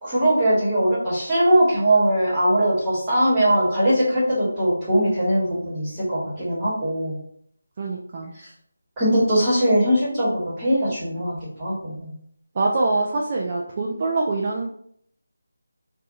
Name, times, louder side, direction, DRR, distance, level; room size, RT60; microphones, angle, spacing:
voice 1, 0.0-7.1 8.3-8.5 9.0-12.1, right 1 dB, 15° right, -10 dB, 1.2 m, -21 dB
voice 2, 7.8-8.3 12.6-14.7, right 3 dB, 30° right, -1 dB, 0.3 m, -24 dB
2.5 x 2.3 x 2.5 m, 0.66 s
figure-of-eight pair, 160°, 0 cm